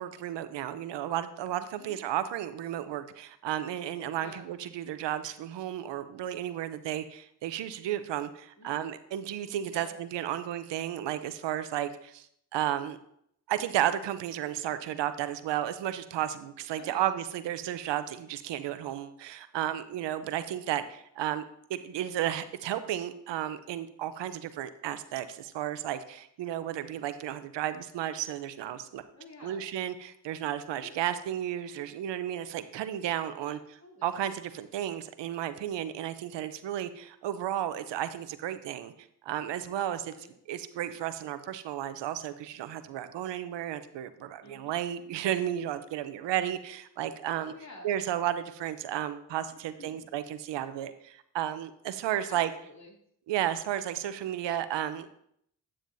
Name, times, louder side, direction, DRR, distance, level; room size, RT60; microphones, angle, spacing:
voice 1, 0.0-12.3 12.5-13.0 13.5-21.4 21.7-29.0 29.4-33.6 34.0-38.9 39.2-40.1 40.5-47.5 47.8-52.5 53.3-55.1, right 11 dB, 80° right, 12 dB, 0.7 m, -33 dB
voice 2, 4.2-4.5 8.6-8.8 9.7-10.0 16.8-17.2 29.1-29.6 30.7-30.9 33.5-34.2 39.7-40.3 44.4-44.8 47.5-47.9 49.8-50.1 52.3-52.9, left 2 dB, 40° left, 0 dB, 2.8 m, -50 dB
9.2 x 8.7 x 2.6 m, 0.70 s
supercardioid pair, 55°, 42 cm